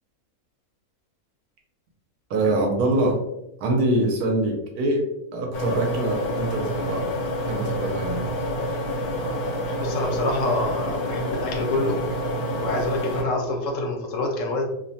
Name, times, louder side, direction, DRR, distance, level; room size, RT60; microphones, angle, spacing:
voice 1, 2.3-3.2 3.6-5.0 5.3-7.1 7.5-8.2, right 1 dB, 80° right, 1 dB, 1.1 m, -24 dB
sound 1, 5.5-13.2, equal, 85° left, 1.2 m, -28 dB
voice 2, 9.8-12.0 12.6-14.7, left 2 dB, 65° left, 1 dB, 0.8 m, -26 dB
2.8 x 2.1 x 2.6 m, 0.86 s
omnidirectional pair, 1.6 m